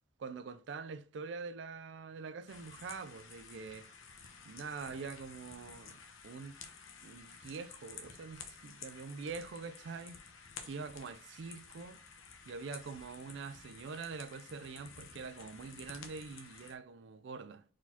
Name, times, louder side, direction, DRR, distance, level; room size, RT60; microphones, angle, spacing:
voice 1, 0.2-3.9 4.4-6.6 7.0-10.2 10.6-12.0 12.5-17.6, right 5 dB, 60° right, 0.3 m, -45 dB
sound 1, 2.5-16.7, left 6 dB, 80° left, 0.9 m, -52 dB
4.6 x 4.0 x 2.8 m
head